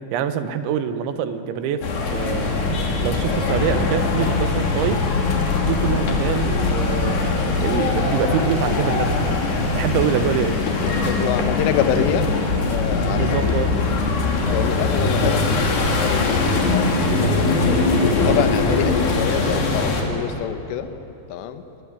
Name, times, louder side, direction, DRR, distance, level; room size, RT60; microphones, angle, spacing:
voice 1, 0.1-1.8 2.1-2.5 3.0-5.0 5.6-9.4 9.7-10.6 11.1-11.2 13.1-13.7, right 8 dB, 85° right, 10 dB, 3.5 m, -25 dB
sound 1, 1.8-20.0, left 3 dB, 55° left, 4.2 m, -21 dB
voice 2, 10.8-12.3 12.7-13.6 14.5-17.8 18.1-20.9 21.3-21.6, left 9 dB, 75° left, 9 dB, 3.2 m, -26 dB
23.0 x 21.5 x 9.8 m, 2.9 s
omnidirectional pair, 5.2 m